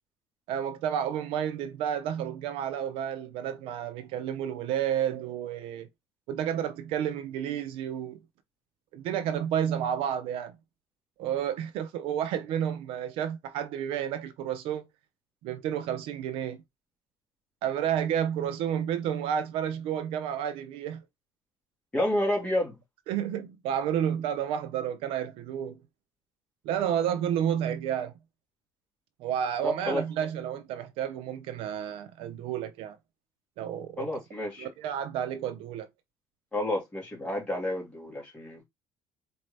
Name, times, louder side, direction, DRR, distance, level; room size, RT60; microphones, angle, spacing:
voice 1, 0.5-5.9 6.3-8.2 8.9-10.5 11.2-14.8 15.4-16.6 17.6-21.0 23.1-25.8 26.6-28.1 29.2-33.0 33.6-34.1 34.6-35.9, right 9 dB, 75° right, 0.5 m, -31 dB
voice 2, 21.9-22.8 29.6-30.0 34.0-34.7 36.5-38.6, left 1 dB, 10° left, 2.1 m, -30 dB
4.2 x 2.7 x 3.2 m
cardioid pair, 155°, 10 cm